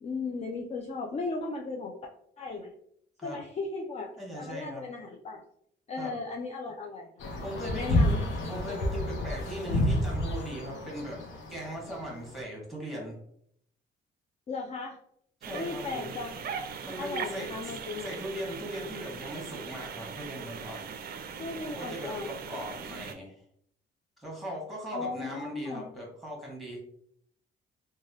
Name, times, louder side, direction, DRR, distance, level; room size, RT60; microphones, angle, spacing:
voice 1, 0.0-2.0 2.4-2.7 3.2-5.4 5.9-7.1 7.7-8.2 14.5-15.0 15.5-16.4 17.0-18.2 21.4-23.0 24.9-25.8, left 3 dB, 35° left, 1 dB, 0.4 m, -36 dB
voice 2, 4.2-4.8 6.0-6.1 7.4-8.2 8.5-11.2 11.5-13.2 15.4-16.1 16.8-17.6 18.0-20.9 21.6-23.4 24.2-26.8, right 1 dB, ahead, -3 dB, 1.4 m, -39 dB
sound 1, 7.2-12.3, left 1 dB, 75° left, 0.7 m, -30 dB
sound 2, 15.4-23.1, right 6 dB, 50° right, 0.4 m, -40 dB
3.0 x 2.3 x 2.7 m, 0.69 s
cardioid pair, 90°, 20 cm